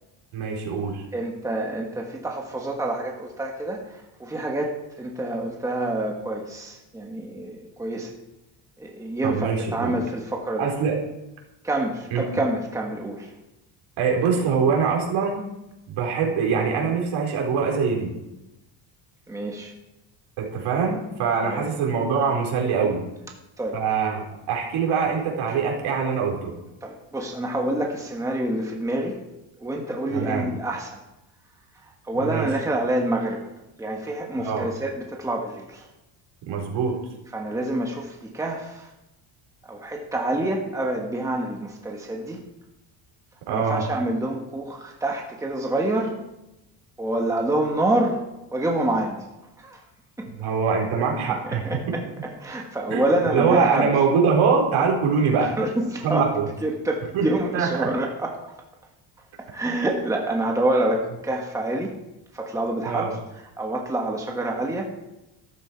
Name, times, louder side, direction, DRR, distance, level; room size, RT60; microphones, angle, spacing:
voice 1, 0.3-1.0 9.2-9.9 10.6-11.0 12.1-12.2 14.0-15.4 15.9-18.1 20.4-23.0 23.7-26.5 30.1-30.5 32.2-32.5 34.4-34.7 36.5-37.0 43.5-43.8 50.3-52.0 52.9-55.5 56.0-56.5 57.1-57.3 57.5-57.9 62.8-63.1, right 5 dB, 70° right, 0 dB, 4.3 m, -23 dB
voice 2, 1.1-8.1 8.8-10.7 11.6-13.3 19.3-19.7 21.4-21.7 23.6-23.8 26.8-29.2 29.6-31.0 32.0-33.4 33.8-35.9 37.3-38.9 39.7-42.4 43.5-46.1 47.0-48.2 48.5-49.2 49.6-49.8 50.2-50.3 51.3-53.9 55.4-56.3 56.6-58.4 59.4-61.9 62.3-63.1 63.6-64.9, right 1 dB, 5° right, 0 dB, 1.4 m, -27 dB
13.5 x 13.5 x 4.6 m, 0.95 s
cardioid pair, 175°, 49 cm